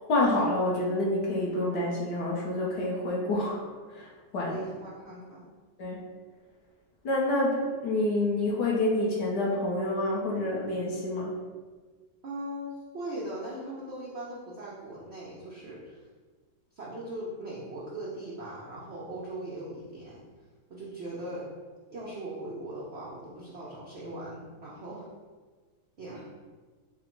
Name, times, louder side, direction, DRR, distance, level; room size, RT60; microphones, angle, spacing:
voice 1, 0.1-3.6 3.9-4.6 5.8-6.0 7.0-11.3, left 1 dB, 65° left, -4 dB, 1.3 m, -28 dB
voice 2, 4.5-5.5 12.2-16.1 16.7-20.2 20.7-21.5 21.9-25.1 26.0-26.3, right 1 dB, 70° right, -6 dB, 0.6 m, -39 dB
4.8 x 2.1 x 4.5 m, 1.4 s
omnidirectional pair, 2.1 m